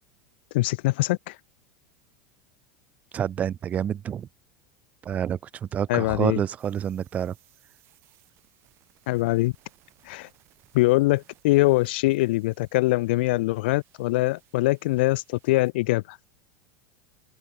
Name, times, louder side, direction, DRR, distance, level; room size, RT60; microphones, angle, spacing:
voice 1, 0.5-1.4 5.9-6.4 9.1-9.5 10.1-10.3 10.7-16.2, left 20 dB, 70° left, 0.4 m, -23 dB
voice 2, 3.1-4.3 5.0-7.3, right 9 dB, 25° right, 0.5 m, -28 dB
sound 1, 6.6-15.7, right 19 dB, 45° right, 7.8 m, -62 dB
open air
supercardioid pair, 140°, 6 cm